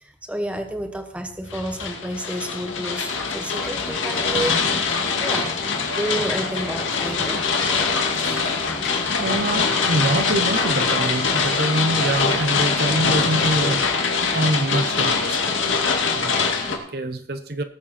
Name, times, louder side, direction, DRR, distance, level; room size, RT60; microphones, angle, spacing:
voice 1, 0.0-4.6 5.2-5.5 6.0-7.4, right 1 dB, 5° right, 5 dB, 1.2 m, -30 dB
sound 1, 1.5-16.8, left 5 dB, 85° left, 2.2 m, -23 dB
sound 2, 3.6-9.9 10.2-10.3, left 2 dB, 50° left, 1.6 m, -36 dB
Mallet percussion, 5.9-8.0, equal, 35° right, 1.3 m, -43 dB
voice 2, 8.2-8.8 9.2-13.9 14.3-15.8 16.1-17.6, right 1 dB, 55° right, 9 dB, 0.8 m, -25 dB
19.0 x 7.5 x 4.3 m, 0.63 s
head